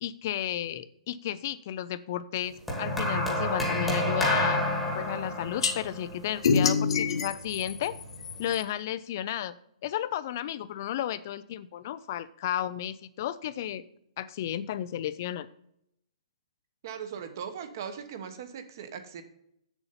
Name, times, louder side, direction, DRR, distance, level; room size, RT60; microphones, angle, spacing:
voice 1, 0.0-4.7 4.9-8.0 8.4-9.5 9.8-13.8 14.2-15.5, left 11 dB, 25° left, 15 dB, 0.4 m, -33 dB
sound 1, 2.7-7.1 8.0-8.3, left 1 dB, ahead, 1.3 m, -29 dB
sound 2, 5.6-5.7 6.4-8.6, left 6 dB, 50° left, 1.2 m, -26 dB
voice 2, 16.8-19.2, right 7 dB, 30° right, 9 dB, 1.0 m, -39 dB
8.1 x 7.0 x 5.7 m, 0.74 s
hypercardioid pair, 180°, 3 cm